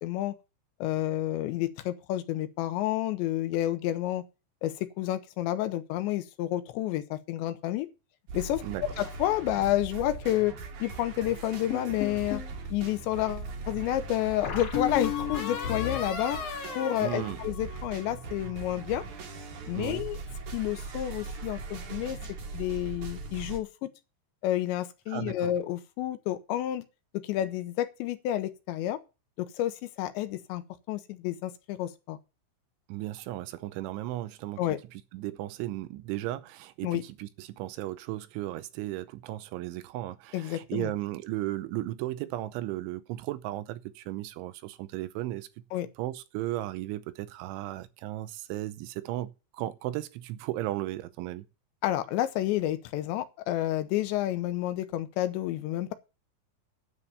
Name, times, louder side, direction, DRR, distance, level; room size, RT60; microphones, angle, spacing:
voice 1, 0.0-0.3 0.8-4.2 4.6-7.9 8.3-10.5 10.8-12.4 12.7-16.4 16.8-19.0 19.7-20.2 20.5-22.2 22.5-23.7 24.4-26.9 27.1-29.0 29.4-30.6 30.9-32.2 34.6-34.8 36.8-37.0 40.3-40.9 45.7-45.9 51.8-55.9, left 13 dB, 80° left, 3.0 m, -30 dB
sound 1, 8.3-23.6, right 4 dB, 55° right, 2.5 m, -40 dB
sound 2, 11.7-12.5 14.4-18.1, left 8 dB, 50° left, 3.2 m, -34 dB
voice 2, 17.0-17.4 19.7-20.0 25.1-25.5 32.9-34.6 35.1-45.5 46.0-51.4, right 15 dB, 85° right, 3.2 m, -35 dB
9.8 x 7.6 x 6.9 m
omnidirectional pair, 5.4 m